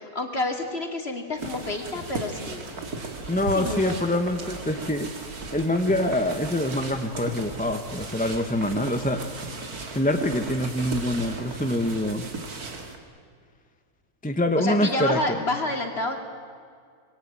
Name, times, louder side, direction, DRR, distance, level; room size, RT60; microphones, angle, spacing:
voice 1, 0.0-2.7 3.5-4.0 14.6-16.2, left 2 dB, 40° left, 3 dB, 2.8 m, -29 dB
sound 1, 1.4-13.0, right 3 dB, 70° right, 2.7 m, -36 dB
voice 2, 3.3-5.1 5.5-9.2 9.9-12.3 14.2-15.4, left 1 dB, 5° left, 6 dB, 0.9 m, -25 dB
25.5 x 21.0 x 8.9 m, 2.1 s
omnidirectional pair, 1.7 m